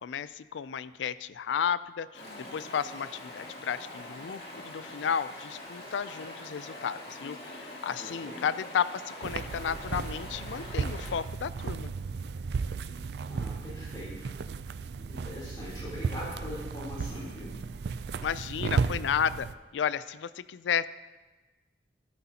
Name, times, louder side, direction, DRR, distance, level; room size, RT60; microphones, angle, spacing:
voice 1, 0.0-2.2 2.5-11.9 18.2-19.5 19.7-20.9, left 7 dB, 90° left, 16 dB, 0.4 m, -33 dB
Stream, 2.1-11.2, left 1 dB, 60° left, 2.5 m, -44 dB
voice 2, 8.0-8.4 13.3-14.3 15.0-17.5, left 1 dB, 25° left, -7 dB, 3.4 m, -42 dB
sound 1, 9.2-19.5, right 5 dB, 65° right, 0.4 m, -34 dB
12.5 x 11.5 x 2.8 m, 1.2 s
head